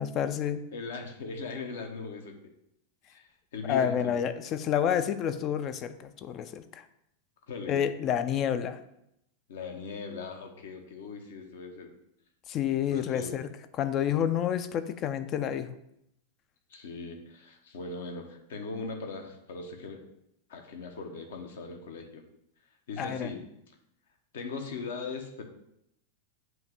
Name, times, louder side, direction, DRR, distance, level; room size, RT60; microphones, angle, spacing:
voice 1, 0.0-0.6 3.6-6.8 7.7-8.8 12.5-13.5 13.8-15.7 23.0-23.4, left 9 dB, 35° left, 11 dB, 0.4 m, -29 dB
voice 2, 0.7-2.4 3.1-4.1 7.5-7.8 9.5-11.9 12.9-13.3 16.7-20.0 20.5-22.2 22.9-23.4 24.3-25.4, left 4 dB, 60° left, 4 dB, 0.9 m, -39 dB
7.6 x 2.9 x 4.9 m, 0.79 s
figure-of-eight pair, 90°, 0 cm